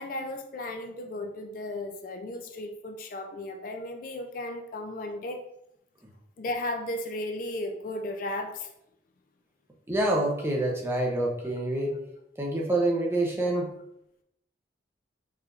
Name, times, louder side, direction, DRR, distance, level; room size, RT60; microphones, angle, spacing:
voice 1, 0.0-5.4 6.4-8.7 13.5-13.6, left 1 dB, 45° left, 5 dB, 0.3 m, -35 dB
voice 2, 9.9-11.9 12.4-13.7, right 1 dB, 10° right, -1 dB, 0.6 m, -26 dB
4.5 x 3.3 x 2.4 m, 0.80 s
head